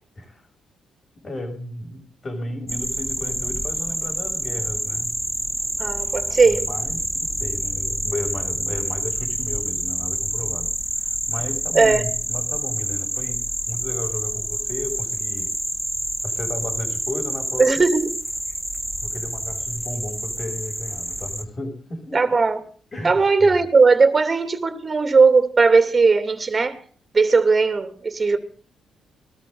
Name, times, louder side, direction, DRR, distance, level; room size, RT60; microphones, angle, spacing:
voice 1, 1.2-5.1 6.4-10.7 11.0-15.5 16.2-17.8 19.0-22.2 22.9-23.6, left 1 dB, 40° left, 7.1 m, -33 dB
sound 1, 2.7-21.4, equal, ahead, 2.2 m, -27 dB
voice 2, 5.8-6.7 11.7-12.0 17.6-18.1 22.1-22.6 23.0-26.8 27.1-28.4, right 4 dB, 35° right, 2.9 m, -17 dB
20.0 x 13.5 x 3.9 m
hypercardioid pair, 50°, 0 cm